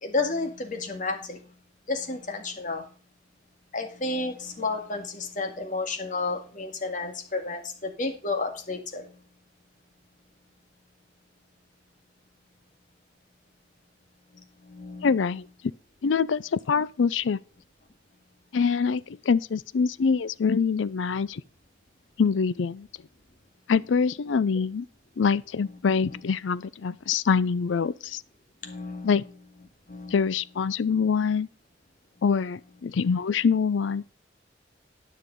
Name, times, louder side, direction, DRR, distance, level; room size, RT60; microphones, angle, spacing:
voice 1, 0.0-1.5 1.9-2.9 3.7-9.2 14.3-15.2 25.6-25.7 26.1-26.2 28.6-29.2 29.9-30.2, left 3 dB, 45° left, 1.9 m, -32 dB
voice 2, 15.0-15.5 16.0-17.4 18.5-21.4 22.2-22.9 23.7-24.9 25.2-28.2 29.0-29.2 30.1-31.5 32.2-34.0, left 5 dB, 80° left, 0.5 m, -24 dB
9.9 x 6.5 x 5.3 m
head